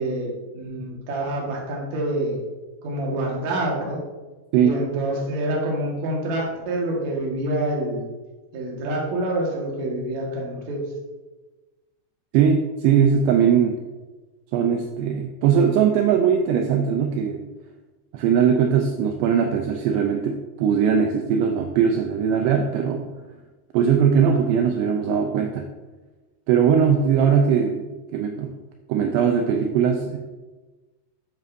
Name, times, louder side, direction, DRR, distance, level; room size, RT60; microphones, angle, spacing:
voice 1, 0.0-2.4 2.8-4.0 4.6-8.1 8.5-10.8, right 1 dB, 55° right, -2 dB, 2.1 m, -27 dB
voice 2, 12.3-13.8 14.5-17.4 18.1-23.1 23.7-25.7 26.5-27.8 28.1-28.5 28.9-30.2, right 7 dB, 85° right, 3 dB, 2.4 m, -20 dB
13.0 x 7.5 x 2.7 m, 1.2 s
omnidirectional pair, 5.5 m